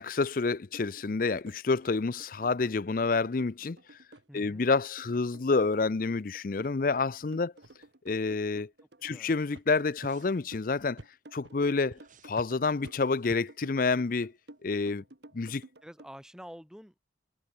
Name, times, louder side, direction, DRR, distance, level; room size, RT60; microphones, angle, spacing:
voice 1, 0.0-3.8 4.3-7.5 8.1-8.7 9.0-11.0 11.3-12.0 12.2-14.3 14.6-15.0 15.3-15.6, left 4 dB, 50° left, 0.5 m, -28 dB
sound 1, 0.7-16.1, right 1 dB, 65° right, 1.7 m, -53 dB
sound 2, 3.1-3.2 3.6-3.7 4.1-4.3 4.6-4.7 5.1-5.2 5.6-5.8 6.1-6.2 6.6-6.7 7.1-7.2 7.6-7.9 8.5-8.6 9.0-9.2 9.5-9.6 10.0-10.1 10.5-10.6 11.0-11.1 11.4-11.6 11.9-12.0 12.3-12.5 12.8-12.9 13.3-13.4, right 1 dB, 85° right, 2.4 m, -50 dB
voice 2, 4.3-4.7 9.0-9.3 15.8-17.0, equal, 5° right, 6.9 m, -48 dB
sound 3, 9.9-11.1 11.9-14.4 14.7-14.8, right 6 dB, 45° right, 6.2 m, -65 dB
head